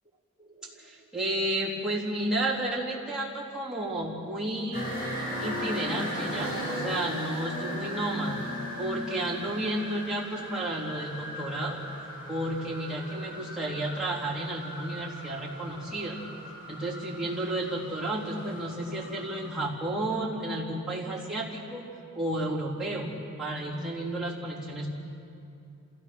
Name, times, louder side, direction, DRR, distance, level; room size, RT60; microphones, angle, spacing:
voice 1, 0.4-4.9 5.4-8.4 8.8-11.8 12.3-16.2 16.7-21.9 22.1-24.9, right 1 dB, 5° right, -7 dB, 3.4 m, -32 dB
sound 1, 4.7-19.5, equal, 45° left, 6.2 m, -38 dB
27.5 x 16.5 x 6.2 m, 2.7 s
head